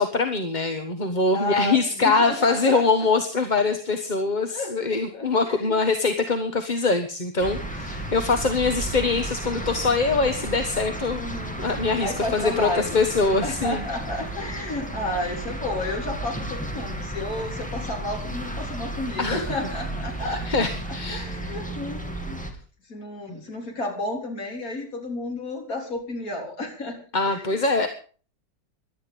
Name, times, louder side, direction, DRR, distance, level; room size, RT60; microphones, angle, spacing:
voice 1, 0.0-11.2 11.6-13.8 19.2-19.5 20.3-21.2 23.3-23.4 27.1-27.9, left 3 dB, 30° left, 6 dB, 1.3 m, -23 dB
voice 2, 1.3-3.1 4.5-4.7 5.1-5.8 11.2-11.6 12.0-12.9 13.4-20.7 21.1-22.0 22.2-22.5 22.9-27.0 27.3-27.6, left 2 dB, 55° left, 1 dB, 4.2 m, -31 dB
sound 1, 7.4-22.5, right 1 dB, 5° left, 2.6 m, -33 dB
17.5 x 12.0 x 5.3 m, 0.40 s
omnidirectional pair, 1.7 m